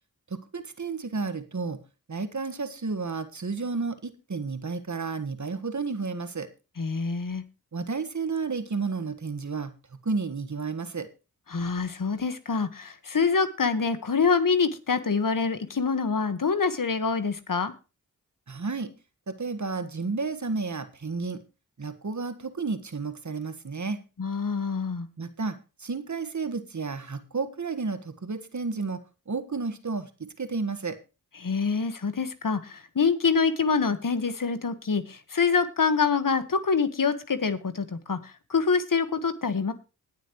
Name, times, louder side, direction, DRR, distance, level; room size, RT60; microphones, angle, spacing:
voice 1, 0.3-1.8 2.1-6.5 7.7-9.7 10.0-11.1 18.5-18.9 19.3-21.4 21.8-24.0 25.2-29.0 29.3-31.0, right 4 dB, 50° right, 10 dB, 1.6 m, -32 dB
voice 2, 6.8-7.4 11.5-17.7 24.2-25.1 31.4-39.7, left 5 dB, 60° left, 11 dB, 1.5 m, -26 dB
20.5 x 7.4 x 3.1 m, 0.30 s
cardioid pair, 40°, 37 cm